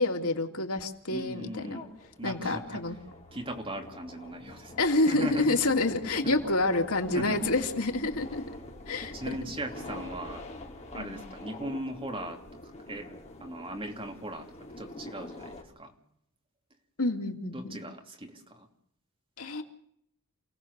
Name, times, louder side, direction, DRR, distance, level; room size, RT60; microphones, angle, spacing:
voice 1, 0.0-1.8 2.2-3.0 4.8-8.4 8.9-9.1 11.0-11.2 17.0-17.8 19.4-19.6, left 2 dB, 85° left, 3 dB, 2.9 m, -28 dB
voice 2, 1.1-1.9 2.2-2.9 3.3-5.6 6.2-6.4 7.1-7.5 9.1-10.5 10.9-13.1 13.4-15.9 17.5-18.7, right 1 dB, 25° right, 3 dB, 2.9 m, -38 dB
sound 1, 1.2-15.6, left 2 dB, 30° left, 4.3 m, -46 dB
28.5 x 18.0 x 6.8 m, 0.71 s
head